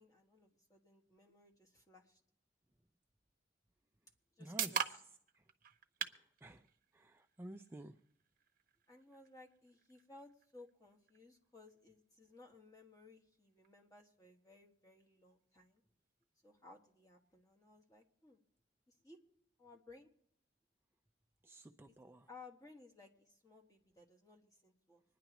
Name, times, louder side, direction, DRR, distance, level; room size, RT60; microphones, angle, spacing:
voice 1, 0.0-2.2 4.4-5.0 8.9-15.8 16.4-18.4 18.9-19.2 19.6-20.1 21.9-22.0 22.3-25.0, left 3 dB, 20° left, 1 dB, 1.4 m, -60 dB
sound 1, 3.8-17.7, right 7 dB, 50° right, 0.8 m, -49 dB
voice 2, 4.4-4.8 5.3-5.5 6.0-6.7 6.9-8.0 21.4-22.3, right 1 dB, 10° right, 4 dB, 0.4 m, -52 dB
25.5 x 10.0 x 3.0 m, 0.68 s
head